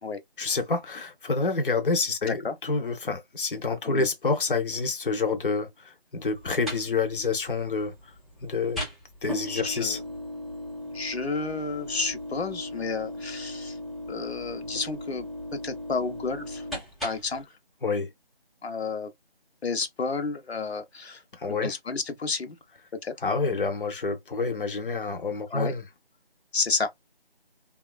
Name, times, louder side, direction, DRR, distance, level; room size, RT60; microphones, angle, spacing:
voice 1, 0.4-7.9 8.4-8.8 9.2-10.0 17.8-18.1 21.3-21.7 23.2-25.8, left 4 dB, 60° left, 0.7 m, -28 dB
voice 2, 2.2-2.6 3.8-4.1 9.5-10.0 10.9-13.8 14.1-16.6 17.0-17.4 18.6-19.1 19.6-22.6 22.9-23.1 25.5-25.7 26.5-26.9, left 4 dB, 90° left, 0.8 m, -31 dB
sound 1, 6.2-17.4, left 1 dB, ahead, 0.5 m, -38 dB
2.9 x 2.4 x 2.2 m
figure-of-eight pair, 175°, 31 cm